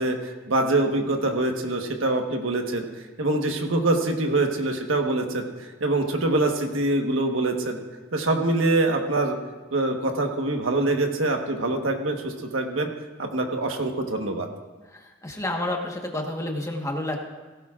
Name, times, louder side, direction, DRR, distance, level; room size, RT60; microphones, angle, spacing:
voice 1, 0.0-5.4 5.8-7.8 8.1-9.4 9.7-12.9 13.2-14.5, right 2 dB, 75° right, 3 dB, 1.3 m, -24 dB
voice 2, 14.9-17.2, left 1 dB, 15° left, 1 dB, 1.3 m, -30 dB
17.0 x 16.5 x 2.5 m, 1.3 s
head